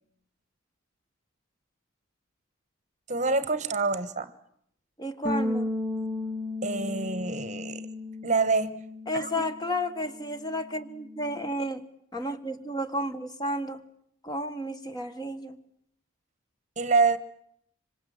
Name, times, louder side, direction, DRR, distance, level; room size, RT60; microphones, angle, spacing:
voice 1, 3.1-4.3 6.6-7.9 8.2-8.8 9.1-9.3 16.8-17.2, right 4 dB, 35° right, 13 dB, 1.1 m, -26 dB
voice 2, 5.0-5.7 9.1-11.8 12.1-13.8 14.2-15.6, equal, 20° left, 9 dB, 1.5 m, -32 dB
Bass guitar, 5.3-11.5, left 2 dB, ahead, 1.0 m, -35 dB
26.0 x 25.5 x 7.9 m, 0.71 s
head